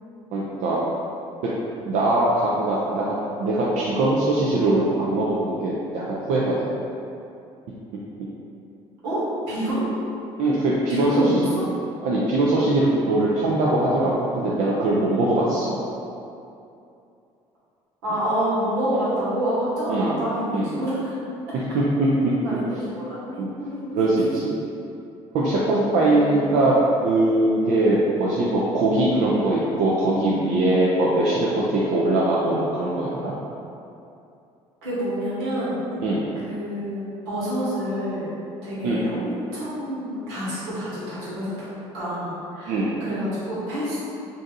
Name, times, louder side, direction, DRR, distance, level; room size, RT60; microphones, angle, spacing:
voice 1, 0.3-0.8 1.9-6.7 10.4-11.4 12.0-15.7 19.9-20.2 20.5-20.7 21.7-22.3 23.4-23.5 23.9-24.5 25.3-26.8 27.0-33.3 36.0-36.3 38.8-39.0 42.7-43.0, right 2 dB, 65° right, -6 dB, 0.5 m, -21 dB
voice 2, 9.0-9.9 10.9-11.6 18.0-21.1 22.4-24.1 25.9-26.5 34.8-35.8 36.4-38.3 38.6-44.0, equal, 90° right, -10 dB, 1.3 m, -28 dB
2.6 x 2.4 x 3.9 m, 2.6 s
supercardioid pair, 70°, 14 cm